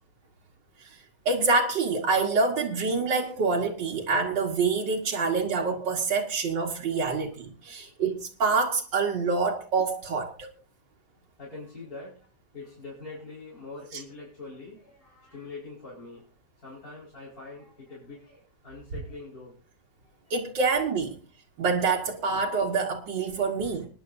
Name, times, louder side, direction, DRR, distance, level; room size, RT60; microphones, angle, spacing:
voice 1, 1.3-10.5 20.3-21.2 21.6-23.9, right 4 dB, 85° right, 2.2 m, -26 dB
voice 2, 7.6-8.0 11.4-16.3 16.6-19.6 20.0-20.3 23.6-23.7, left 3 dB, 55° left, 5.5 m, -44 dB
25.5 x 10.5 x 2.6 m
omnidirectional pair, 1.9 m